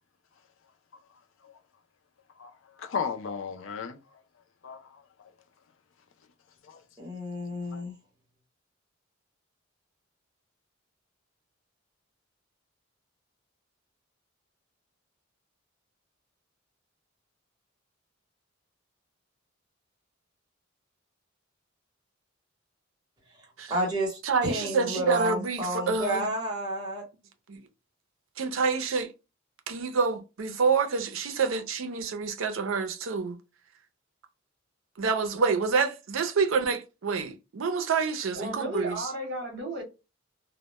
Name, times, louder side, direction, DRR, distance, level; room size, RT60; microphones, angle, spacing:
voice 1, 2.8-4.0 4.6-5.0 6.7-6.8 7.7-7.8, left 6 dB, 65° left, 0.4 m, -34 dB
voice 2, 7.0-7.9 23.7-27.0, right 1 dB, 20° right, 0.9 m, -31 dB
voice 3, 24.2-26.3 27.5-27.6 28.4-29.1 29.7-33.4 35.0-39.1, right 5 dB, 75° right, 0.5 m, -27 dB
voice 4, 38.3-39.8, right 1 dB, 60° right, 0.9 m, -34 dB
2.1 x 2.0 x 2.8 m
head